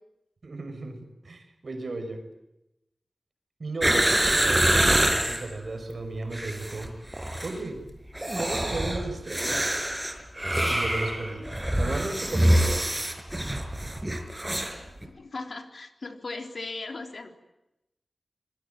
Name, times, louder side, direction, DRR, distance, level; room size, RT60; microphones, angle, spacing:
voice 1, 0.4-1.0 1.2-2.2 3.6-6.9 7.4-7.8 8.4-9.8 10.7-11.5 11.8-13.1, right 2 dB, 65° right, 6 dB, 5.9 m, -35 dB
sound 1, 3.8-5.4 6.2-6.9 7.1-7.5 8.1-14.8 15.0-15.1, right 1 dB, 15° right, 5.3 m, -25 dB
voice 2, 14.8-17.3, left 3 dB, 65° left, 5 dB, 3.7 m, -38 dB
26.5 x 22.0 x 9.3 m, 0.90 s
wide cardioid pair, 75°, 0 cm